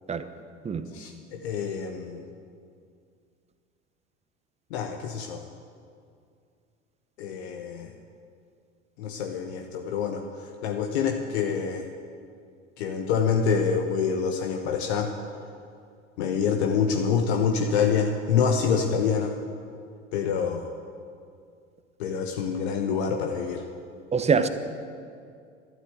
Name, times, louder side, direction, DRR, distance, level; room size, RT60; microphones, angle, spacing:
voice 1, 0.9-2.2 4.7-5.4 7.2-7.9 9.0-11.9 12.8-15.1 16.2-19.3 20.1-20.7 22.0-23.7, left 6 dB, 60° left, 4 dB, 1.2 m, -26 dB
voice 2, 24.1-24.5, right 5 dB, 15° right, 10 dB, 1.0 m, -23 dB
13.0 x 12.5 x 8.0 m, 2.3 s
figure-of-eight pair, 75°, 37 cm